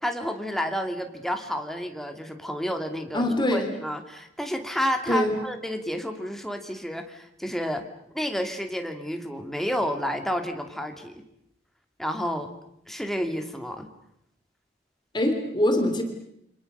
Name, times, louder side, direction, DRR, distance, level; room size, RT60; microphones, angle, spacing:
voice 1, 0.0-7.9 8.1-11.2 12.0-12.5 12.9-13.9, equal, ahead, 5 dB, 2.5 m, -30 dB
voice 2, 3.1-3.7 5.1-5.4 15.1-16.0, left 1 dB, 25° left, 6 dB, 3.3 m, -23 dB
28.0 x 26.0 x 6.7 m, 0.78 s
head